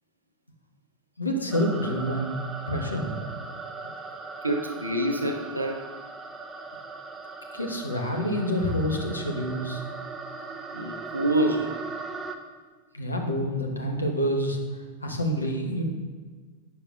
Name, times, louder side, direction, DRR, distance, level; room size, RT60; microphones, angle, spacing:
voice 1, 1.2-2.4 2.7-3.2 7.5-9.8 12.9-15.8, equal, 80° left, 2 dB, 1.0 m, -28 dB
sound 1, 1.5-12.4, right 3 dB, 15° right, 0.6 m, -39 dB
voice 2, 4.4-5.9 10.7-11.8, right 1 dB, 85° right, 4 dB, 0.8 m, -26 dB
9.2 x 6.7 x 2.5 m, 1.4 s
figure-of-eight pair, 90°, 0 cm